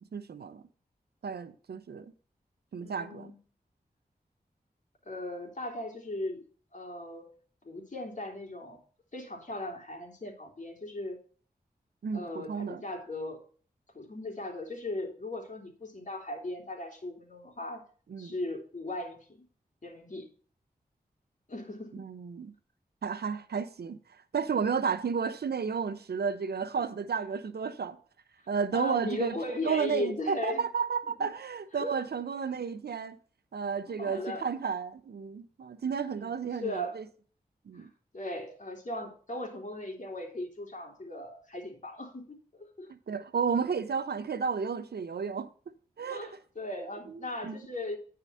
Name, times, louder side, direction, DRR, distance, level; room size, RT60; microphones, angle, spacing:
voice 1, 0.1-0.6 1.2-2.1 2.7-3.3 12.0-12.8 18.1-18.3 22.0-22.5 23.0-28.0 28.5-29.3 29.6-33.2 33.5-37.1 37.7-37.9 42.9-45.5 46.0-46.3 47.1-47.6, right 6 dB, 85° right, 0.8 m, -32 dB
voice 2, 2.8-3.4 5.0-6.4 6.7-7.3 7.6-8.8 9.1-11.2 12.1-13.4 13.9-17.8 18.2-19.5 19.8-20.3 21.5-22.0 28.7-30.7 31.2-31.3 31.7-32.0 33.9-34.5 36.1-37.0 37.7-37.9 38.1-42.9 46.1-48.0, left 1 dB, 50° left, 3.4 m, -38 dB
10.0 x 4.8 x 5.6 m
cardioid pair, 50°, 16 cm